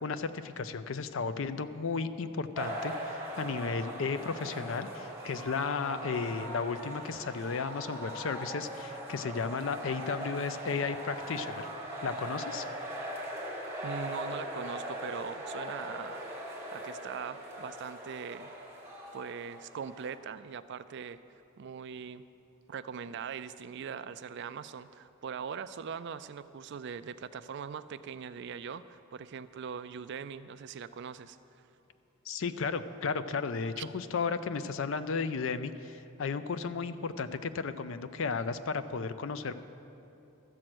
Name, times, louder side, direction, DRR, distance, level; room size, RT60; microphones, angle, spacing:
voice 1, 0.0-11.7 12.0-12.7 32.3-39.5, left 5 dB, 60° left, 12 dB, 0.5 m, -34 dB
sound 1, 2.5-20.2, right 1 dB, 10° right, 1.5 m, -40 dB
voice 2, 13.8-16.3 16.7-18.5 19.1-22.2 22.7-31.4 33.8-33.9, right 6 dB, 55° right, 13 dB, 0.3 m, -41 dB
13.0 x 7.6 x 6.1 m, 2.8 s
head